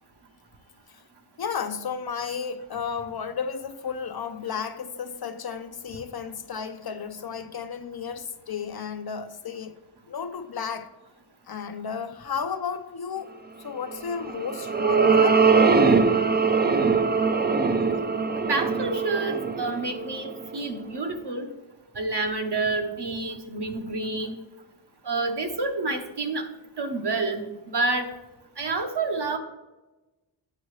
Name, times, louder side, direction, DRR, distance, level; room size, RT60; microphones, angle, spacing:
voice 1, 1.4-9.8 10.1-10.9 11.5-15.5, left 6 dB, 55° left, 0.5 m, -33 dB
sound 1, 14.1-20.7, right 4 dB, 25° right, 0.4 m, -22 dB
voice 2, 18.5-21.5 21.9-24.4 25.0-26.4 26.8-28.1 28.6-29.4, right 3 dB, 60° right, 1.0 m, -28 dB
8.4 x 6.2 x 3.2 m
wide cardioid pair, 80°, 46 cm